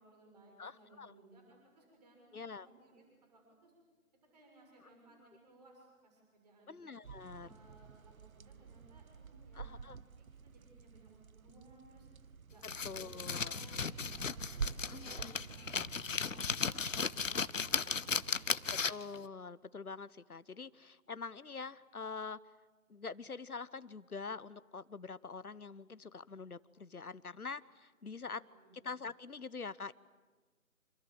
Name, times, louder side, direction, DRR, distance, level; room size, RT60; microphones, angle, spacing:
voice 1, 0.0-2.3 2.6-3.0 3.3-3.7 4.3-6.7 7.4-9.9 10.1-12.1 12.5-13.1 13.4-18.7 28.2-28.8, right 2 dB, 30° right, 0 dB, 6.6 m, -62 dB
voice 2, 0.6-1.1 2.3-2.7 6.7-7.6 9.5-10.0 12.8-13.6 14.9-15.3 18.7-22.5 22.9-28.4 28.7-29.9, left 4 dB, 85° left, 17 dB, 1.1 m, -45 dB
sound 1, 7.0-18.9, right 6 dB, 70° right, 0.8 m, -48 dB
sound 2, 12.6-19.2, left 5 dB, 60° left, 0.8 m, -36 dB
27.0 x 26.0 x 7.9 m, 1.3 s
figure-of-eight pair, 165°, 43 cm